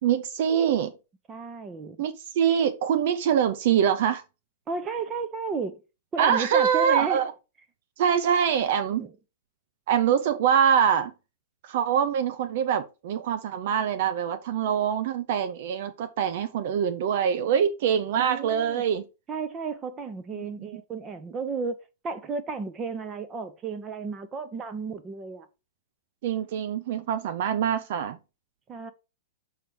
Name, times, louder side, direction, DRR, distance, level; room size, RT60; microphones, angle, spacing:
voice 1, 0.0-0.9 2.0-4.2 6.2-7.3 8.0-9.1 9.9-11.1 11.6-19.0 20.3-20.5 26.2-28.2, right 8 dB, 55° right, 0.7 m, -24 dB
voice 2, 1.3-2.0 4.7-5.8 6.1-7.2 9.0-9.1 18.2-18.8 19.3-21.8 22.0-25.5 28.7-28.9, right 5 dB, 25° right, 1.0 m, -33 dB
6.7 x 4.5 x 4.6 m
figure-of-eight pair, 105°, 0 cm